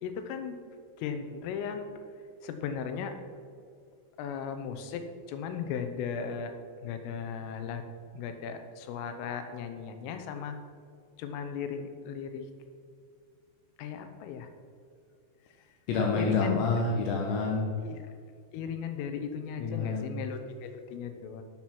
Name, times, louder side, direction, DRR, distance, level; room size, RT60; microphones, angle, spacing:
voice 1, 0.0-0.6 1.0-1.8 2.4-3.2 4.2-5.0 5.3-6.5 6.8-7.8 8.1-10.6 11.2-12.5 13.8-14.5 16.2-16.6 17.8-18.0 18.5-21.4, left 7 dB, 90° left, 8 dB, 3.6 m, -36 dB
voice 2, 15.9-17.8 19.6-20.1, left 4 dB, 75° left, 0 dB, 3.1 m, -28 dB
12.0 x 7.5 x 6.1 m, 2.2 s
omnidirectional pair, 5.6 m